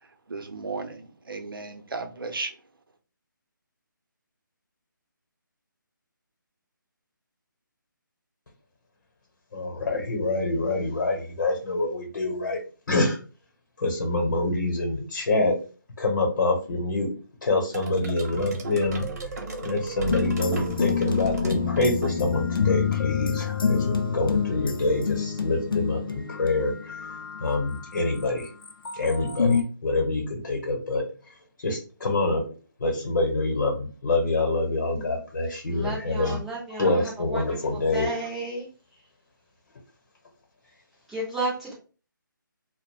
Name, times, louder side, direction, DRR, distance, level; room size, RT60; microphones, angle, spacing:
voice 1, 0.3-2.5, right 3 dB, 85° right, 6 dB, 0.6 m, -35 dB
voice 2, 9.5-12.6 12.9-13.2 13.8-15.5 16.0-17.1 17.4-28.5 28.9-32.4 32.8-36.4 36.8-38.1, left 2 dB, 60° left, 2 dB, 0.8 m, -26 dB
sound 1, 17.7-22.6, right 2 dB, 45° right, 0.6 m, -35 dB
sound 2, 20.0-27.8 28.5-29.6, left 6 dB, 85° left, 0.5 m, -27 dB
voice 3, 35.7-38.7 41.1-41.7, right 2 dB, ahead, -6 dB, 0.3 m, -33 dB
2.3 x 2.0 x 3.1 m, 0.36 s
figure-of-eight pair, 155°, 11 cm